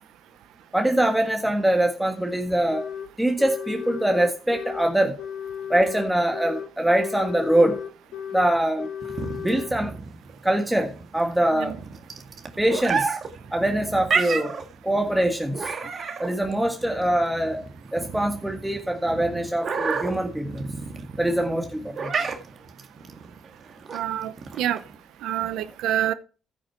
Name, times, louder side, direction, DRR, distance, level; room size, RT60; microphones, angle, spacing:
voice 1, 0.7-2.9 3.2-5.2 5.7-7.8 8.3-8.9 9.4-9.9 10.4-11.8 12.6-13.2 13.5-14.6 14.8-15.7 16.2-17.6 17.9-20.7 21.2-22.1, right 1 dB, 5° right, 1.6 m, -23 dB
sound 1, 2.7-3.1 3.4-4.9 5.2-6.7 7.0-8.5 8.8-9.7, left 8 dB, 90° left, 2.3 m, -35 dB
sound 2, 9.0-25.0, right 5 dB, 50° right, 1.9 m, -31 dB
voice 2, 23.9-24.8 25.2-26.1, right 11 dB, 90° right, 0.8 m, -27 dB
14.5 x 6.4 x 4.5 m
cardioid pair, 90°, 0 cm